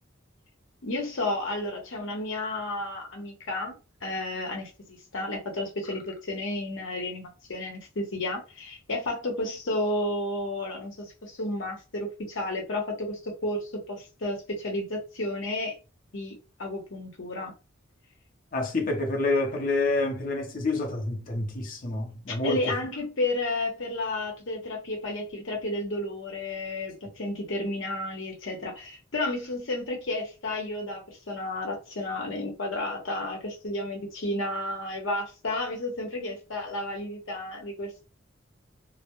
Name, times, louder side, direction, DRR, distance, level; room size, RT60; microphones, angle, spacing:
voice 1, 0.8-3.7 4.0-15.8 16.1-17.5 22.3-38.1, left 2 dB, 70° left, 0.9 m, -32 dB
voice 2, 18.5-22.6, left 2 dB, 45° left, 0.6 m, -28 dB
2.2 x 2.0 x 2.9 m
head